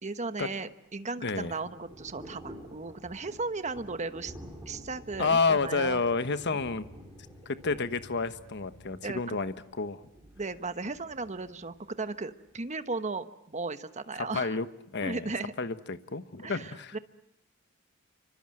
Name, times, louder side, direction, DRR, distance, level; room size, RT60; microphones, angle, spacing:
voice 1, 0.0-4.3 4.7-6.0 9.0-9.4 10.4-14.6 15.0-15.5 16.4-17.0, right 3 dB, 35° right, 10 dB, 1.2 m, -36 dB
Thunder / Rain, 0.7-12.7, equal, 15° right, 5.4 m, -51 dB
voice 2, 1.2-1.5 5.2-6.8 7.4-10.0 14.2-14.7 14.9-15.3 15.6-17.0, left 4 dB, 55° left, 11 dB, 1.2 m, -30 dB
sound 1, 4.2-9.2, left 1 dB, 75° left, 7.3 m, -54 dB
29.0 x 25.0 x 7.7 m, 0.75 s
head